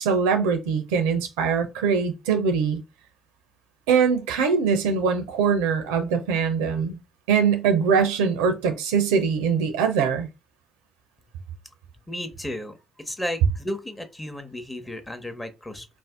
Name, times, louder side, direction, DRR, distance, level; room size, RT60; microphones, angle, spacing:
voice 1, 0.0-2.8 3.9-7.0 7.3-10.3, right 6 dB, 85° right, 0.4 m, -22 dB
voice 2, 12.1-15.9, left 1 dB, 15° left, 0.8 m, -34 dB
2.6 x 2.0 x 3.4 m
hypercardioid pair, 45°, 0 cm